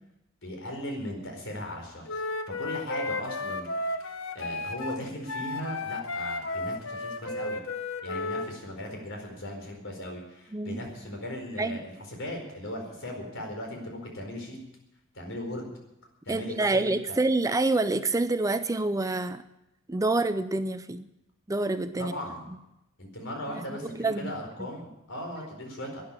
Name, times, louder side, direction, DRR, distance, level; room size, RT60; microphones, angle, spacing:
voice 1, 0.4-2.2 2.6-3.9 4.3-7.6 8.0-14.6 15.1-15.7 16.2-17.2 22.0-22.4 23.0-26.0, left 1 dB, 65° left, 2 dB, 4.7 m, -38 dB
Wind instrument woodwind instrument, 2.1-8.5, left 2 dB, 85° left, 1.3 m, -33 dB
voice 2, 16.3-19.4 19.9-21.0 21.5-22.1 23.7-24.3 24.6-24.7, right 2 dB, 15° right, 11 dB, 0.5 m, -27 dB
12.5 x 10.0 x 9.7 m, 0.89 s
head